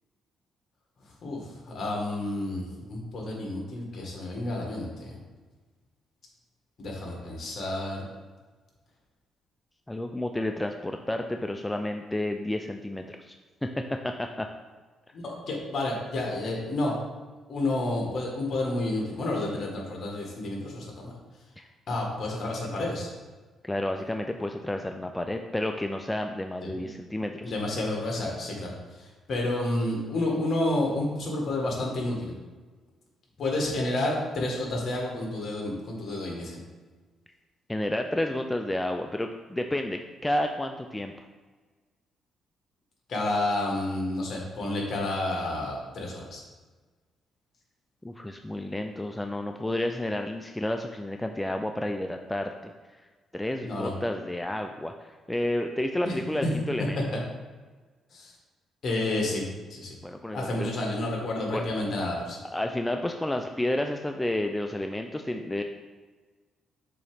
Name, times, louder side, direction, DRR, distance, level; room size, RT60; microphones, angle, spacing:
voice 1, 1.2-5.2 6.8-8.1 15.1-16.9 17.5-21.1 21.9-23.1 26.6-26.9 27.4-32.4 33.4-36.6 43.1-46.4 53.6-53.9 56.0-56.1 56.4-56.5 58.1-58.3 58.8-60.0 60.3-62.4, left 2 dB, 55° left, -1 dB, 1.7 m, -30 dB
voice 2, 9.9-13.3 13.6-13.7 14.0-14.5 21.6-21.7 23.6-27.5 37.7-41.1 48.0-52.7 53.3-57.0 60.0-60.7 61.5-61.6 62.5-65.6, left 1 dB, 10° left, 5 dB, 0.4 m, -31 dB
6.8 x 3.0 x 5.0 m, 1.3 s
cardioid pair, 90°, 0 cm